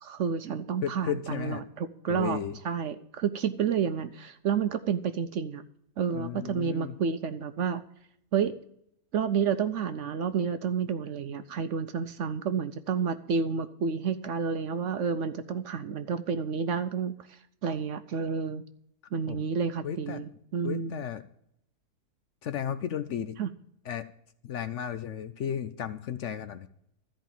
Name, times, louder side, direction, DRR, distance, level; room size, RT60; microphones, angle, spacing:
voice 1, 0.0-2.4 2.6-5.6 6.0-7.8 8.3-8.5 9.1-18.6 19.1-21.0 23.4-23.5, right 6 dB, 65° right, 11 dB, 0.9 m, -30 dB
voice 2, 0.8-1.6 2.1-2.6 6.1-7.0 19.3-19.4 19.8-20.2 20.6-21.2 22.4-23.4 23.8-24.1 24.4-26.7, left 9 dB, 60° left, 12 dB, 0.8 m, -34 dB
13.5 x 5.1 x 8.9 m, 0.72 s
omnidirectional pair, 1.6 m